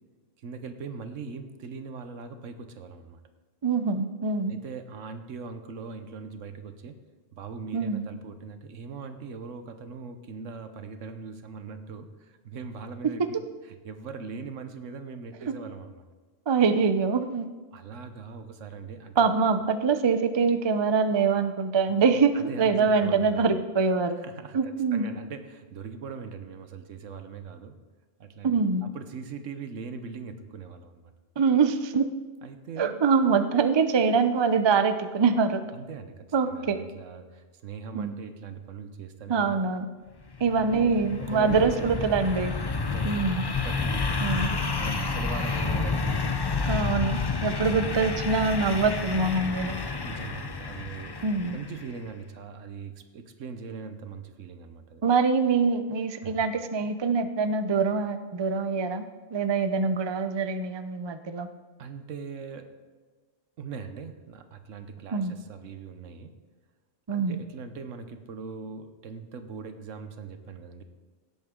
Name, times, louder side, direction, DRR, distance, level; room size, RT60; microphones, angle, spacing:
voice 1, 0.4-3.2 4.5-7.0 7.3-13.4 13.6-16.0 17.7-19.2 21.9-23.6 24.2-27.8 28.2-31.1 32.4-33.0 35.7-39.7 40.5-41.9 42.7-43.4 43.6-46.7 50.0-51.2 51.5-55.0 56.2-56.4 61.8-62.7 63.6-66.4 67.1-70.8, right 5 dB, 75° right, 9 dB, 1.2 m, -41 dB
voice 2, 3.6-4.5 7.7-8.0 13.0-13.3 15.4-15.5 16.5-17.5 19.2-24.2 24.5-25.1 28.4-28.9 31.4-32.1 32.8-35.6 36.3-36.8 37.9-38.2 39.3-39.9 40.4-42.5 43.0-43.5 44.2-44.5 46.7-49.8 51.2-51.6 55.0-59.0 59.3-61.5 65.1-65.3 67.1-67.4, right 5 dB, 45° right, 9 dB, 0.3 m, -24 dB
sound 1, 40.2-51.9, left 4 dB, 35° left, 0.4 m, -30 dB
17.0 x 8.1 x 3.7 m, 1.4 s
omnidirectional pair, 1.3 m